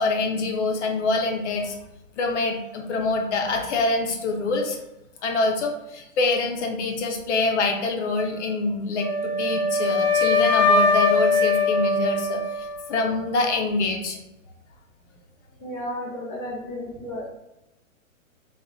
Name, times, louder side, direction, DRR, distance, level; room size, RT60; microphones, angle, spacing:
voice 1, 0.0-1.8 2.2-4.8 5.2-14.2, left 3 dB, 55° left, 3 dB, 0.5 m, -25 dB
Wind instrument woodwind instrument, 9.0-13.1, left 3 dB, 35° right, 0.7 m, -21 dB
voice 2, 15.6-17.2, left 1 dB, 5° left, -10 dB, 0.5 m, -33 dB
2.6 x 2.0 x 2.5 m, 0.91 s
hypercardioid pair, 140°, 42 cm